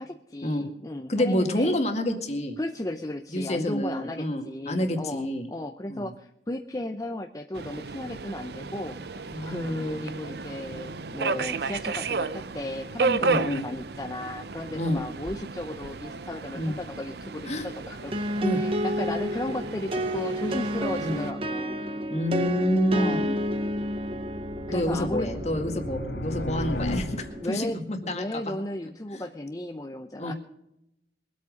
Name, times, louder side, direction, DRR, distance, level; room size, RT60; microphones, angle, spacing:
voice 1, 0.0-1.7 2.6-18.1 18.5-21.8 22.9-23.3 24.7-25.3 27.4-27.8 28.1-30.3, left 1 dB, 20° left, 5 dB, 0.7 m, -35 dB
voice 2, 1.1-2.6 3.3-5.5 5.9-6.1 9.3-10.2 13.2-13.6 14.7-15.0 16.6-16.8 17.5-17.7 18.4-18.6 21.0-21.2 22.1-23.3 24.7-28.4 29.1-29.2 30.2-30.3, left 1 dB, 40° left, 4 dB, 2.0 m, -28 dB
Subway metro underground, 7.5-21.3, right 4 dB, 65° right, 0.7 m, -33 dB
sound 1, 18.1-27.7, equal, 30° right, 1.0 m, -31 dB
sound 2, 22.4-27.6, left 1 dB, 80° left, 2.5 m, -35 dB
22.0 x 8.5 x 5.2 m, 0.81 s
head